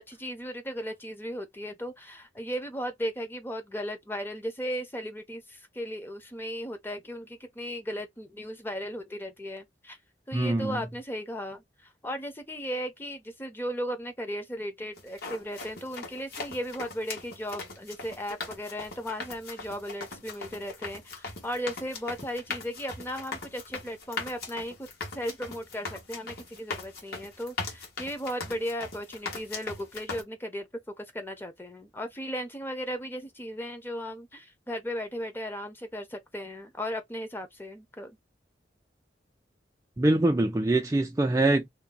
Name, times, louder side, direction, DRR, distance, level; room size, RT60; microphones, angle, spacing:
voice 1, 0.1-10.0 10.3-24.9 25.1-30.7 31.0-38.1, equal, 10° left, 0.7 m, -36 dB
voice 2, 10.3-10.8 40.0-41.7, right 2 dB, 15° right, 0.4 m, -24 dB
sound 1, 15.0-30.2, left 3 dB, 60° left, 1.2 m, -40 dB
2.8 x 2.2 x 3.8 m
head